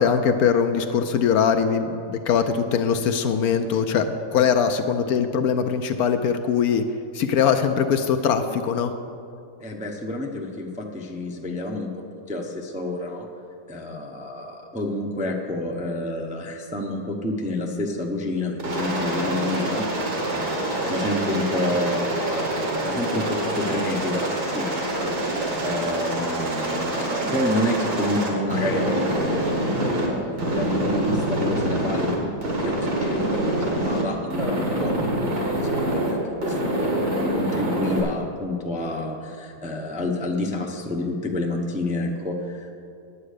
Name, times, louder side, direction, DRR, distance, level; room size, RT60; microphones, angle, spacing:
voice 1, 0.0-6.8 7.1-8.9, left 7 dB, 70° left, 8 dB, 1.0 m, -21 dB
voice 2, 9.6-11.9 12.3-13.3 13.7-19.8 20.3-29.7 30.0-36.9 37.3-42.7, left 1 dB, 10° right, -1 dB, 0.4 m, -29 dB
Aircraft, 18.6-30.1 30.4-32.1 32.4-34.0 34.3-36.1 36.4-38.0, right 1 dB, 75° right, 2.5 m, -26 dB
9.9 x 8.4 x 6.5 m, 2.5 s
omnidirectional pair, 1.8 m